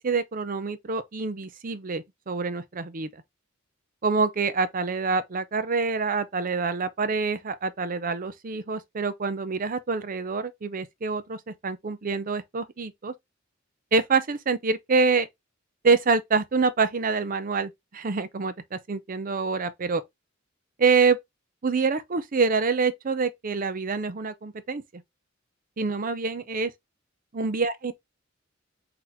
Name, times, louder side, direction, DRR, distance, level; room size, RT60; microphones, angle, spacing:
voice 1, 0.0-3.2 4.0-13.1 13.9-15.3 15.8-20.0 20.8-21.2 21.6-25.0 25.8-26.7 27.3-27.9, right 4 dB, 45° right, 0.6 m, -26 dB
4.0 x 2.9 x 3.8 m
head